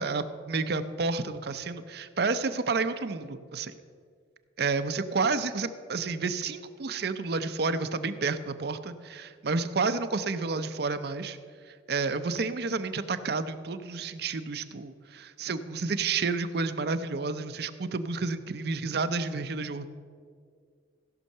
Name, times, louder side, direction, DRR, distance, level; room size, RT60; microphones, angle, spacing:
voice 1, 0.0-3.7 4.6-11.4 11.7-19.8, right 4 dB, 60° right, 10 dB, 0.6 m, -30 dB
16.0 x 5.5 x 6.6 m, 2.1 s
head